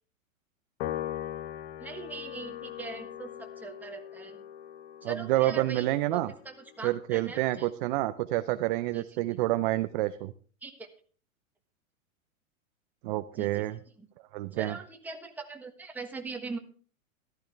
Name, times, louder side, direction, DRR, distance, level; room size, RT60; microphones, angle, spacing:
Piano, 0.8-7.4, left 12 dB, 50° left, 1.0 m, -41 dB
voice 1, 1.8-4.4 5.0-7.7 8.9-9.0 10.6-10.9 13.3-13.7 14.0-14.1 14.5-16.6, right 4 dB, 5° right, 3 dB, 1.3 m, -41 dB
voice 2, 5.0-6.3 6.8-10.3 13.0-13.8 14.3-14.7, right 16 dB, 40° right, 11 dB, 0.6 m, -28 dB
14.0 x 12.5 x 3.4 m, 0.41 s
hypercardioid pair, 125°, 42 cm